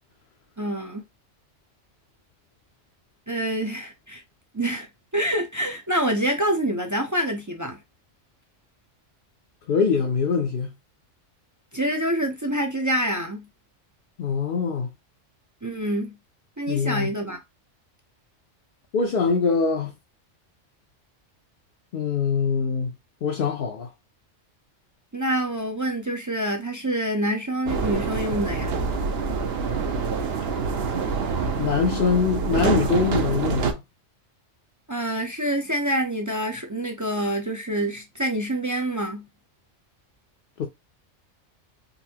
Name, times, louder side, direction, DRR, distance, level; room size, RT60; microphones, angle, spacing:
voice 1, 0.6-1.0 3.3-4.2 4.5-4.9 5.1-7.8 11.7-13.5 15.6-16.2 16.6-17.4 25.1-28.7 34.9-39.3, right 1 dB, 30° right, 0.3 m, -26 dB
voice 2, 9.7-10.7 14.2-14.9 16.7-17.1 18.9-19.9 21.9-22.9 23.2-23.9 31.6-33.8 40.6-40.7, left 5 dB, 55° left, 0.7 m, -23 dB
sound 1, 27.7-33.7, right 5 dB, 60° right, 0.9 m, -26 dB
4.0 x 2.6 x 2.8 m
omnidirectional pair, 1.3 m